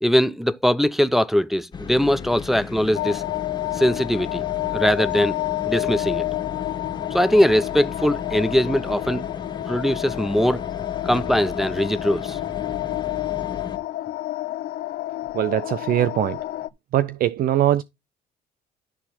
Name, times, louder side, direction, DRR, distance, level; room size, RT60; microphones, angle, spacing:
voice 1, 0.0-3.2 3.7-4.5 4.7-5.4 5.7-6.3 7.1-9.2 9.7-10.6 11.0-12.4, equal, ahead, 0.5 m, -21 dB
sound 1, 1.7-13.8, left 6 dB, 25° left, 1.7 m, -35 dB
sound 2, 2.9-16.7, left 16 dB, 65° left, 0.6 m, -29 dB
voice 2, 15.3-16.4 16.9-17.8, right 12 dB, 60° right, 0.5 m, -21 dB
12.5 x 4.3 x 4.1 m
cardioid pair, 110°, 17 cm